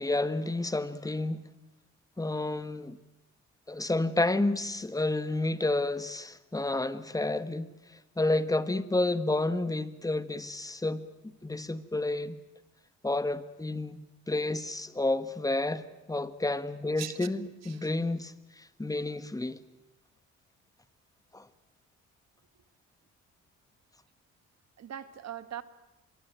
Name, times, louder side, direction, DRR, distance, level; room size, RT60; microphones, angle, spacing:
voice 1, 0.0-1.4 2.2-3.0 3.7-11.1 11.4-12.4 13.0-19.6 21.3-21.5, left 2 dB, 10° left, 1.5 m, -30 dB
voice 2, 17.0-17.3 17.6-17.9 24.8-25.6, right 10 dB, 60° right, 1.7 m, -41 dB
25.5 x 21.5 x 8.9 m
cardioid pair, 90°, 30 cm